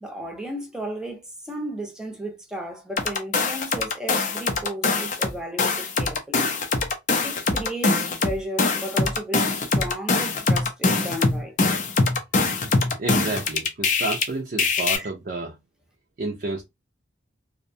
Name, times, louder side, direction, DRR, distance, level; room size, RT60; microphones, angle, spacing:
voice 1, 0.0-6.5 7.2-11.6 15.0-15.1, right 1 dB, 5° right, 0.6 m, -34 dB
sound 1, 3.0-5.3 5.6-14.2 14.6-15.0, left 3 dB, 40° left, 0.4 m, -23 dB
voice 2, 13.0-15.6 16.2-16.6, right 2 dB, 50° right, 0.5 m, -30 dB
2.6 x 2.1 x 2.6 m
head